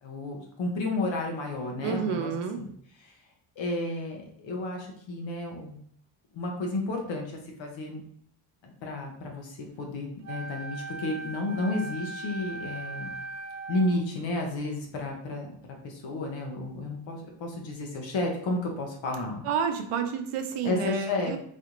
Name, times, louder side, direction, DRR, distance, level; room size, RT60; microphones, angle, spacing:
voice 1, 0.0-2.3 2.6-2.7 3.0-3.1 3.6-5.8 6.3-8.0 8.6-13.1 13.7-15.5 15.8-19.4 20.6-21.4, left 2 dB, 65° left, 1 dB, 0.8 m, -32 dB
voice 2, 1.8-2.6 19.4-21.4, right 6 dB, 85° right, 6 dB, 0.7 m, -29 dB
Wind instrument woodwind instrument, 10.2-14.0, right 2 dB, 35° right, 0.6 m, -39 dB
4.2 x 2.5 x 2.9 m, 0.66 s
cardioid pair, 110°, 49 cm